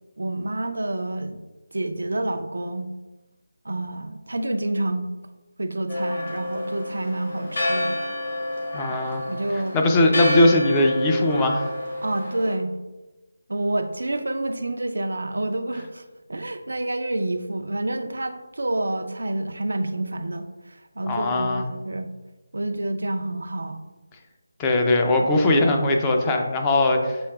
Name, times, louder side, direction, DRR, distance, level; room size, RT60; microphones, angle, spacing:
voice 1, 0.2-1.4 1.7-2.9 3.6-5.1 5.6-8.0 8.9-9.0 9.3-9.8 12.0-12.7 13.5-16.0 16.3-22.1 22.5-23.8, right 1 dB, 75° right, 6 dB, 0.4 m, -28 dB
Church bell, 5.9-12.5, left 1 dB, 55° left, 1.3 m, -29 dB
voice 2, 8.7-9.2 9.7-11.7 21.1-21.7 24.6-27.2, left 2 dB, 15° left, 2 dB, 0.4 m, -20 dB
6.9 x 2.8 x 2.3 m, 1.1 s
figure-of-eight pair, 165°, 0 cm